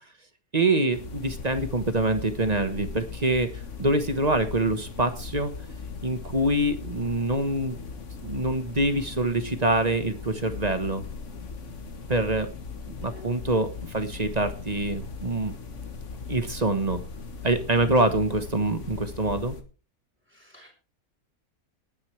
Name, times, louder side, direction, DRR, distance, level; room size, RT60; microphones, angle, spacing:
voice 1, 0.5-5.5 6.0-7.8 8.2-11.0 12.1-12.5 13.0-15.5 16.3-17.0 17.4-19.6, right 2 dB, 25° right, 9 dB, 1.3 m, -25 dB
sound 1, 0.9-19.6, left 5 dB, 50° left, 1.8 m, -39 dB
voice 2, 13.1-13.4 20.3-20.7, left 3 dB, 5° right, 0 dB, 3.9 m, -48 dB
19.5 x 9.7 x 3.3 m, 0.35 s
omnidirectional pair, 1.6 m